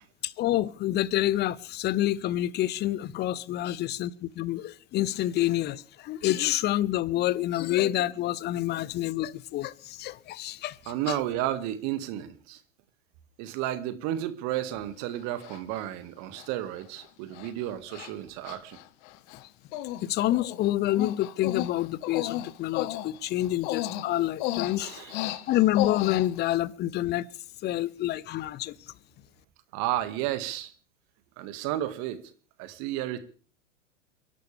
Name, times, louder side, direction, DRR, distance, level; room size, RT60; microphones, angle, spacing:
voice 1, 0.2-11.2 20.0-27.3 27.6-28.7, left 14 dB, 25° left, 0.7 m, -28 dB
voice 2, 10.9-12.6 13.4-18.8 24.8-25.2 29.7-30.7 31.4-32.2 32.6-33.2, right 13 dB, 45° right, 2.0 m, -32 dB
Human voice, 14.5-14.6 15.4-15.8 16.4-16.5 16.8-17.0 17.3-17.5 17.9-18.1 18.4-19.4 19.7-20.0 20.3-26.6, left 15 dB, 45° left, 1.1 m, -34 dB
30.0 x 11.5 x 3.5 m
figure-of-eight pair, 95°, 38 cm